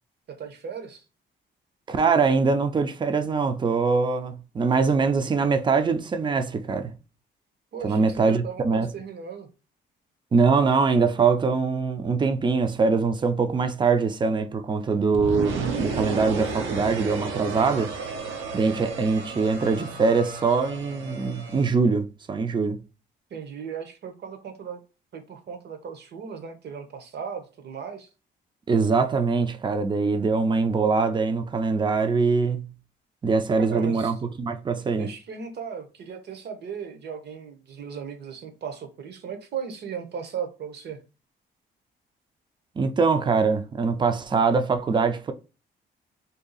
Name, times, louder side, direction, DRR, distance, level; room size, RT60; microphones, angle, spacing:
voice 1, 0.3-1.0 7.7-9.5 23.3-24.8 25.1-28.1 33.6-34.1 34.9-41.0, right 7 dB, 60° right, 0.8 m, -37 dB
voice 2, 1.9-6.9 7.8-8.9 10.3-17.9 18.5-22.8 28.7-32.7 33.2-35.1 42.8-45.3, right 4 dB, 25° right, 0.4 m, -23 dB
sound 1, 15.1-21.7, right 4 dB, 85° right, 0.7 m, -33 dB
2.7 x 2.3 x 3.8 m
cardioid pair, 90°, 20 cm